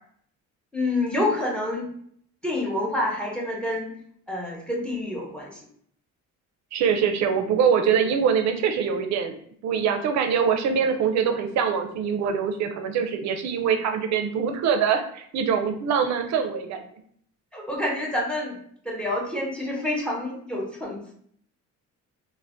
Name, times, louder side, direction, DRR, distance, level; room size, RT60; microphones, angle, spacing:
voice 1, 0.7-1.9 2.4-3.9 4.3-5.6 17.5-18.6 18.8-21.1, left 1 dB, 5° left, -2 dB, 0.6 m, -28 dB
voice 2, 6.7-16.8, right 7 dB, 60° right, 6 dB, 0.4 m, -24 dB
2.4 x 2.1 x 3.3 m, 0.64 s
cardioid pair, 155°, 31 cm